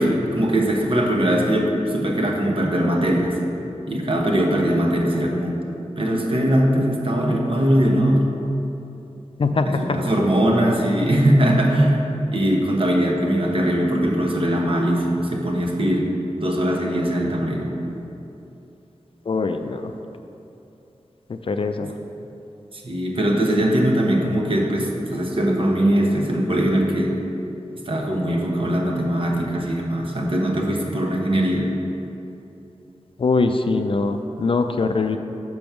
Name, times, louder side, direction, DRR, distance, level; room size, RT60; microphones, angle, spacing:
voice 1, 0.0-3.3 3.9-5.6 6.0-8.3 9.5-12.0 12.3-16.1 16.4-17.8 22.7-27.1 27.9-31.7, right 1 dB, 50° right, 0 dB, 1.0 m, -21 dB
voice 2, 9.4-10.0 19.3-19.9 21.3-21.9 33.2-35.2, left 3 dB, 50° left, 7 dB, 0.4 m, -22 dB
6.1 x 5.2 x 5.9 m, 2.9 s
wide cardioid pair, 95°, 12 cm